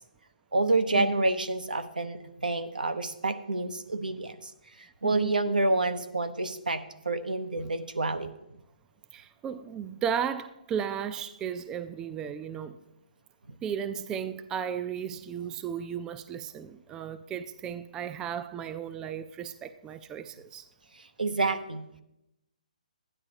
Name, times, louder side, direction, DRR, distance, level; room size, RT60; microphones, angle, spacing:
voice 1, 0.5-4.5 4.8-8.3 20.9-21.9, right 2 dB, 85° right, 0.7 m, -28 dB
voice 2, 5.0-5.4 9.1-12.8 13.6-20.7, right 8 dB, 15° right, 0.3 m, -35 dB
12.0 x 9.8 x 2.8 m
figure-of-eight pair, 140°, 5 cm